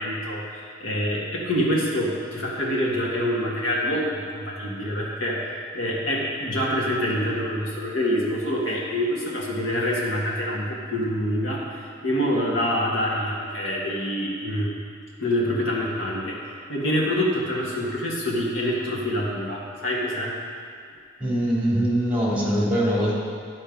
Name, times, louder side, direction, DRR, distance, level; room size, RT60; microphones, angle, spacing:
voice 1, 0.0-5.5 5.7-14.7 15.2-16.4 16.7-20.3, equal, 80° left, -5 dB, 1.7 m, -26 dB
voice 2, 21.2-23.1, equal, 5° right, -7 dB, 2.2 m, -22 dB
10.5 x 4.3 x 5.1 m, 2.2 s
head